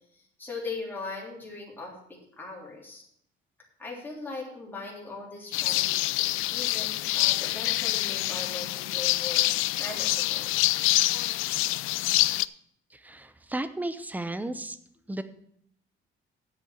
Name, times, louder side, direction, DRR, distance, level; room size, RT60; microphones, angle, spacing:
voice 1, 0.1-3.0 3.8-9.5 9.8-10.5, left 3 dB, 10° left, -3 dB, 3.4 m, -40 dB
sound 1, 5.5-12.5, left 18 dB, 80° left, 0.4 m, -26 dB
voice 2, 12.9-14.8 15.1-15.2, right 1 dB, 10° right, 12 dB, 0.7 m, -34 dB
8.4 x 7.6 x 7.2 m, 0.69 s
cardioid pair, 140°, 21 cm